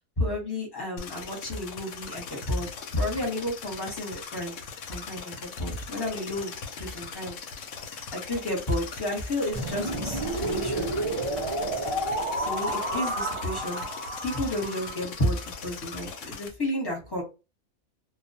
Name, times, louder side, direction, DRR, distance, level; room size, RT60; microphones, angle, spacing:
voice 1, 0.2-4.6 4.9-7.4 8.1-10.9 12.4-13.9 14.2-17.2, left 1 dB, 20° left, -1 dB, 0.8 m, -31 dB
sound 1, 1.0-16.5, left 5 dB, 70° left, 0.8 m, -40 dB
sound 2, 9.5-15.5, right 1 dB, 40° right, 0.4 m, -31 dB
2.2 x 2.1 x 2.6 m, 0.29 s
omnidirectional pair, 1.4 m